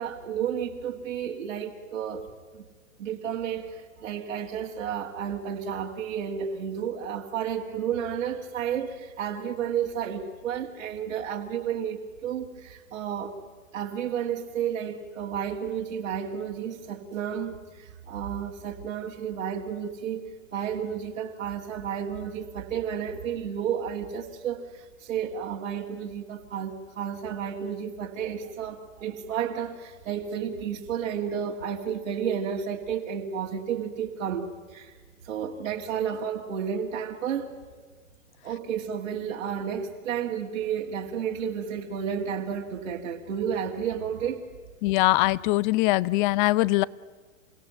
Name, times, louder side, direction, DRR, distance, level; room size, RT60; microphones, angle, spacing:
voice 1, 0.0-2.3 2.5-2.6 3.0-13.3 13.7-20.2 20.5-34.9 35.2-37.6 38.4-44.4, right 8 dB, 80° right, -3 dB, 2.8 m, -32 dB
voice 2, 44.8-46.8, left 19 dB, 40° left, 22 dB, 0.7 m, -22 dB
28.5 x 16.5 x 8.9 m, 1.5 s
hypercardioid pair, 120°, 40 cm